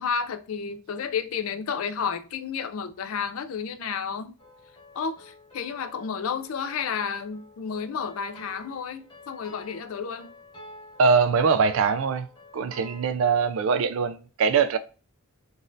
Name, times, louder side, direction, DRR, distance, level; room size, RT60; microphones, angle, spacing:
voice 1, 0.0-4.3 4.9-10.3, left 6 dB, 80° left, 0.4 m, -31 dB
sound 1, 4.4-13.1, left 2 dB, 25° left, 1.1 m, -50 dB
voice 2, 11.0-12.3 12.5-14.8, right 5 dB, 65° right, 0.4 m, -22 dB
3.9 x 2.4 x 2.6 m
head